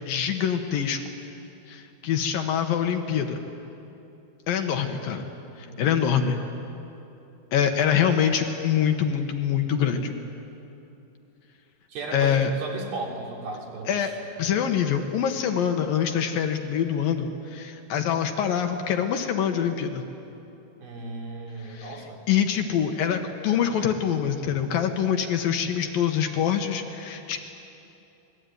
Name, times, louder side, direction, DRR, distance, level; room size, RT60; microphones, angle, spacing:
voice 1, 0.1-1.0 1.7-3.4 4.5-5.3 5.6-6.4 7.5-10.1 12.1-12.5 13.9-14.1 14.4-20.0 21.6-22.0 22.3-27.4, left 8 dB, 70° left, 5 dB, 2.8 m, -25 dB
voice 2, 4.7-5.1 5.5-5.9 11.9-14.1 20.8-22.2, right 3 dB, 70° right, -1 dB, 5.4 m, -36 dB
26.5 x 20.0 x 9.4 m, 2.9 s
omnidirectional pair, 4.6 m